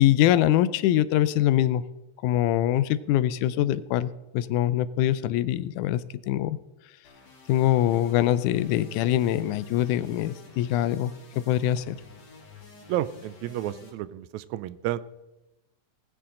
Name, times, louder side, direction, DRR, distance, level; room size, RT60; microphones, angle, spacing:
voice 1, 0.0-1.8 2.2-6.6 7.5-12.0, left 12 dB, 90° left, 15 dB, 2.1 m, -23 dB
sound 1, 7.0-13.9, left 3 dB, 65° left, 3.6 m, -51 dB
voice 2, 12.9-15.0, right 13 dB, 80° right, 16 dB, 1.8 m, -31 dB
19.5 x 9.9 x 3.8 m, 0.98 s
omnidirectional pair, 3.4 m